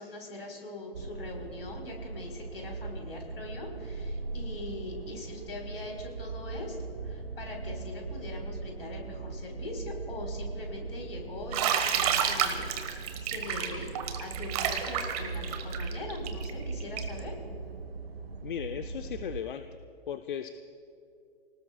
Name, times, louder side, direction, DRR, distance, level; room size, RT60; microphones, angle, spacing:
voice 1, 0.0-6.8 7.0-12.7 13.2-13.9 14.2-17.3, left 2 dB, 75° left, 1 dB, 4.3 m, -42 dB
sound 1, 0.9-19.4, right 4 dB, 75° right, 1.1 m, -39 dB
Bathtub (filling or washing), 11.5-17.2, right 9 dB, 40° right, 1.5 m, -30 dB
voice 2, 18.4-19.7 20.1-20.5, left 9 dB, 55° left, 9 dB, 0.7 m, -36 dB
29.0 x 19.0 x 2.4 m, 2.6 s
figure-of-eight pair, 120°, 30 cm